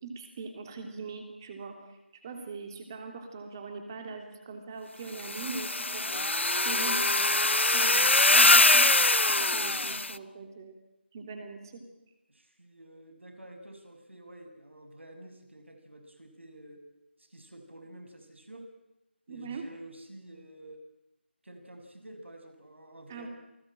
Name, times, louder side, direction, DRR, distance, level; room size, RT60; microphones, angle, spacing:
voice 1, 0.0-2.0 2.2-6.3 6.6-7.3 7.7-8.9 9.4-10.7 11.1-11.8 19.3-19.6 23.1-23.3, right 4 dB, 20° right, 5 dB, 3.1 m, -41 dB
sound 1, 5.2-10.1, left 2 dB, 85° left, 0.9 m, -23 dB
voice 2, 12.3-16.8 17.2-18.7 19.3-20.8 21.4-23.3, right 1 dB, 90° right, 6 dB, 6.7 m, -49 dB
28.0 x 19.5 x 9.0 m, 0.92 s
figure-of-eight pair, 170°, 6 cm